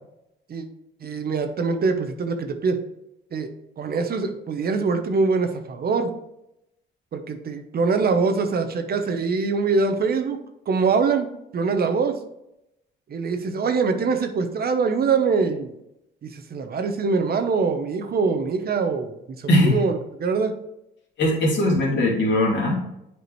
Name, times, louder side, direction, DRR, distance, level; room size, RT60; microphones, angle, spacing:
voice 1, 1.0-2.8 3.3-3.5 3.8-6.1 7.1-10.4 10.7-12.2 13.1-15.7 16.2-20.5, right 4 dB, 50° right, 7 dB, 0.9 m, -23 dB
voice 2, 19.5-19.8 21.2-22.8, left 1 dB, 65° left, -2 dB, 2.4 m, -20 dB
8.0 x 4.8 x 3.1 m, 0.84 s
cardioid pair, 90°, 20 cm